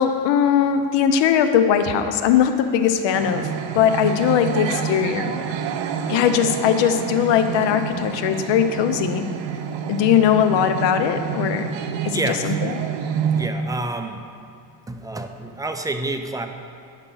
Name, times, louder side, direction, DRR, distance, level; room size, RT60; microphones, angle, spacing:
voice 1, 0.0-3.5 3.7-5.3 6.1-9.3 9.9-11.7 12.0-12.5, left 8 dB, 75° left, 8 dB, 0.7 m, -19 dB
sound 1, 3.1-13.5, right 7 dB, 80° right, 0.6 m, -28 dB
voice 2, 12.1-12.8 13.3-14.2 14.9-16.5, right 2 dB, 10° right, 6 dB, 0.4 m, -28 dB
9.9 x 5.7 x 3.8 m, 2.4 s
cardioid pair, 90°, 44 cm